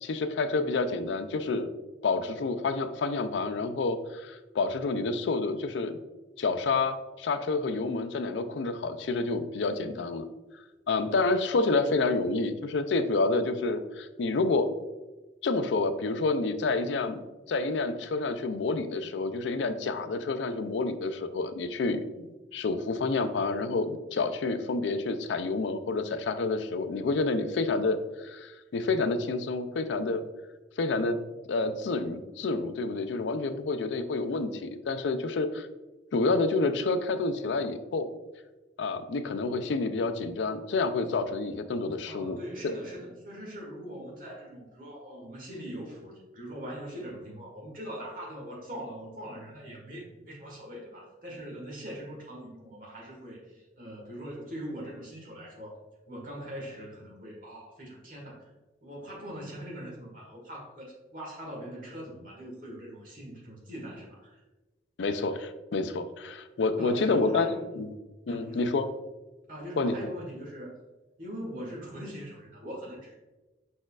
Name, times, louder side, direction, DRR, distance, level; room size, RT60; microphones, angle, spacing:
voice 1, 0.0-1.7 2.0-6.0 6.4-10.2 10.9-14.7 15.4-17.2 17.5-22.0 22.5-30.3 30.8-31.2 31.5-35.7 36.1-38.1 38.8-42.4 42.6-42.7 65.0-67.5 67.8-67.9 68.3-68.9 69.8-69.9, left 3 dB, 75° left, 10 dB, 0.4 m, -28 dB
voice 2, 42.1-55.8 56.1-58.5 58.8-64.4 66.8-67.9 68.3-68.8 69.5-70.7 71.2-73.2, equal, 45° right, -2 dB, 1.4 m, -41 dB
5.0 x 4.2 x 2.4 m, 1.1 s
head